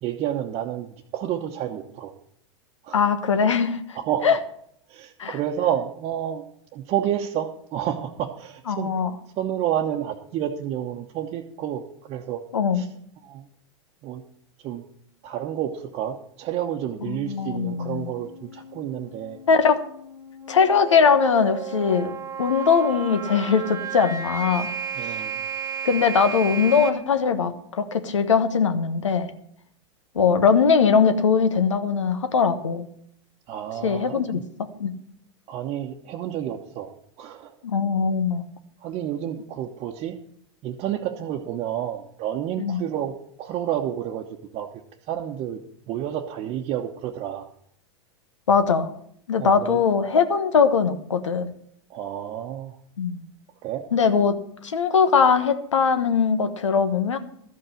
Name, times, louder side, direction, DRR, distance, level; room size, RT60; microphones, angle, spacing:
voice 1, 0.0-2.1 2.8-3.0 3.9-4.3 4.9-6.4 6.7-8.9 9.4-12.4 12.7-12.9 13.2-13.5 14.0-14.2 14.6-14.8 15.2-19.4 25.0-25.4 33.5-34.4 35.5-36.9 37.2-37.5 38.8-40.1 40.6-44.2 44.5-44.7 45.1-45.6 45.9-47.5 49.4-49.8 51.9-52.8 53.6-53.8, right 10 dB, 40° right, -1 dB, 1.1 m, -30 dB
voice 2, 2.9-3.8 4.2-4.4 5.2-5.4 8.7-9.1 12.5-12.8 17.1-18.1 19.5-19.8 20.5-22.1 22.4-24.7 25.8-29.3 30.1-32.8 33.8-35.0 37.6-38.4 42.6-42.8 48.5-48.9 49.3-51.5 53.0-53.2 53.9-57.2, left 6 dB, 85° left, 10 dB, 1.2 m, -21 dB
sound 1, 17.3-26.9, right 7 dB, 20° right, 1.5 m, -34 dB
13.0 x 5.6 x 9.0 m, 0.68 s
hypercardioid pair, 100°, 15 cm